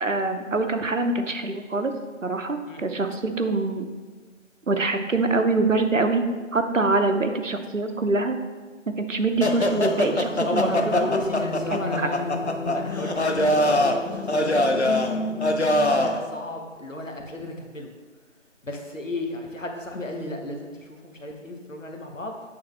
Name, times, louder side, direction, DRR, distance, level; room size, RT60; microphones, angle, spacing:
voice 1, 0.0-1.9 2.2-3.9 4.7-6.2 6.5-8.4 9.0-11.1 11.7-12.1, right 3 dB, 75° right, 7 dB, 0.7 m, -24 dB
sound 1, 9.4-16.2, left 1 dB, 60° left, 0.5 m, -23 dB
voice 2, 10.4-12.2 12.7-15.4 15.8-17.9 18.6-22.3, left 2 dB, 75° left, 2 dB, 1.1 m, -33 dB
8.7 x 3.5 x 3.4 m, 1.4 s
figure-of-eight pair, 180°, 39 cm